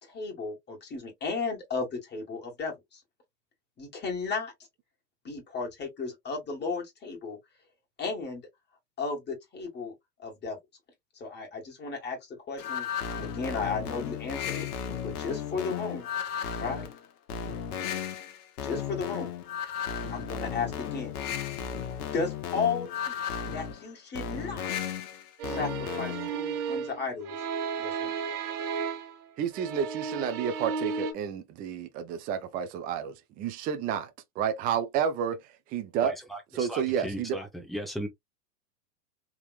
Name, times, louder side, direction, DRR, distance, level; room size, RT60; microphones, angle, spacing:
voice 1, 0.0-3.0 3.8-4.5 5.2-7.4 8.0-8.4 9.0-9.9 10.2-10.6 11.2-12.9 13.2-14.7 15.0-16.1 16.6-16.9 18.6-19.3 20.1-21.1 22.1-24.9 25.5-27.4 27.8-28.2, left 4 dB, 20° left, 2.0 m, -34 dB
sound 1, 12.6-26.4, left 8 dB, 65° left, 1.2 m, -35 dB
sound 2, 25.4-29.2 29.5-31.1, right 6 dB, 65° right, 1.5 m, -34 dB
voice 2, 29.4-34.1 34.4-35.4 35.7-36.1 36.5-37.4, right 8 dB, 20° right, 0.4 m, -30 dB
voice 3, 36.0-38.1, right 1 dB, ahead, 1.0 m, -37 dB
3.6 x 2.9 x 2.5 m
hypercardioid pair, 125°, 49 cm